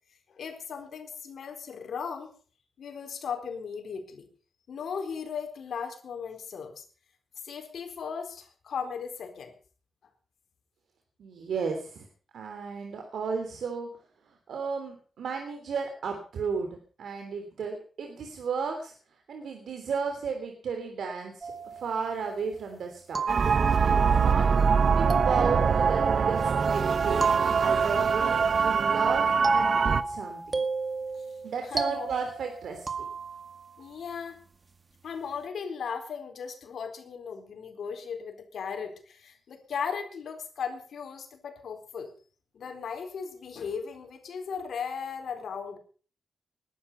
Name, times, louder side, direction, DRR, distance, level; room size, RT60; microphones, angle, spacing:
voice 1, 0.3-2.3 2.8-4.3 4.7-6.8 7.4-9.5 31.6-32.1 33.8-34.4 35.0-42.1 42.5-45.8, left 6 dB, 80° left, 5 dB, 4.1 m, -37 dB
voice 2, 11.2-12.1 12.3-13.9 14.5-18.9 19.3-23.2 23.8-24.6 24.9-30.6 31.4-33.1, right 5 dB, 90° right, 4 dB, 3.2 m, -34 dB
sound 1, 21.4-22.5 23.1-24.1 25.1-26.6 27.2-28.4 29.4-33.7, right 4 dB, 30° right, 1.9 m, -33 dB
sound 2, 23.3-30.0, right 6 dB, 60° right, 0.9 m, -23 dB
20.0 x 12.0 x 5.6 m, 0.41 s
wide cardioid pair, 115°, 0 cm